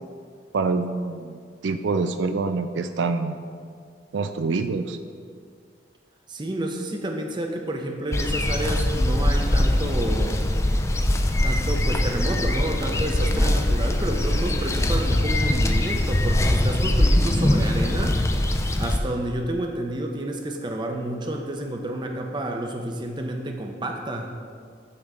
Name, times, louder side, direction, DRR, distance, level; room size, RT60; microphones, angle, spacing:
voice 1, 0.5-3.4 4.1-5.0, right 4 dB, 85° right, 9 dB, 0.4 m, -26 dB
voice 2, 6.3-10.4 11.4-18.2 18.8-24.3, right 1 dB, 25° right, 3 dB, 0.7 m, -30 dB
sound 1, 8.1-19.0, left 1 dB, 15° left, 0.4 m, -22 dB
9.6 x 3.6 x 6.6 m, 2.1 s
head